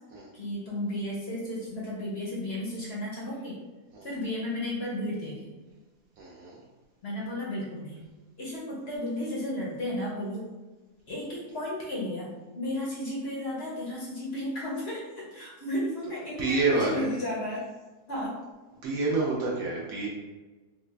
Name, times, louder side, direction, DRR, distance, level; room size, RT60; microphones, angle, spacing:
voice 1, 0.3-3.6 4.0-5.6 7.0-8.0 8.4-10.5 11.1-17.7 18.1-18.4, left 1 dB, 55° left, -4 dB, 0.7 m, -33 dB
voice 2, 6.2-6.6 16.4-17.1 18.8-20.1, right 3 dB, 70° right, -4 dB, 0.9 m, -28 dB
3.2 x 2.1 x 3.2 m, 1.2 s
omnidirectional pair, 1.7 m